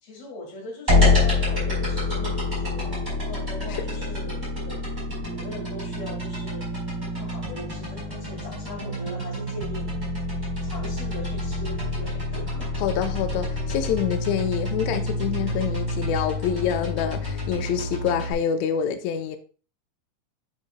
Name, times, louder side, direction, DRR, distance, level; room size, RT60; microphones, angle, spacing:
voice 1, 0.0-4.9 5.3-6.7 7.0-10.1 10.6-12.8 13.6-13.9 16.5-16.9, left 2 dB, 50° left, 3.1 m, -40 dB
sound 1, 0.9-18.3, left 2 dB, 5° right, 3.6 m, -27 dB
voice 2, 12.8-19.4, left 8 dB, 85° left, 1.5 m, -26 dB
9.3 x 7.5 x 2.2 m
omnidirectional pair, 3.9 m